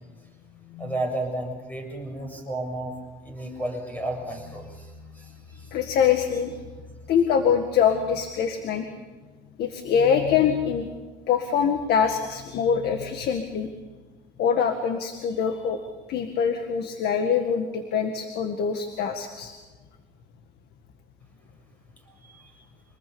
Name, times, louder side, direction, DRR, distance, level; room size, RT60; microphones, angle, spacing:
voice 1, 0.8-2.9 3.2-5.7 22.1-22.6, right 1 dB, 10° left, 3 dB, 7.2 m, -33 dB
voice 2, 5.7-6.6 7.1-8.9 9.6-10.9 11.3-13.7 14.4-15.8 16.1-19.5, left 7 dB, 75° left, 7 dB, 1.9 m, -24 dB
26.5 x 20.0 x 7.1 m, 1.3 s
cardioid pair, 110°, 17 cm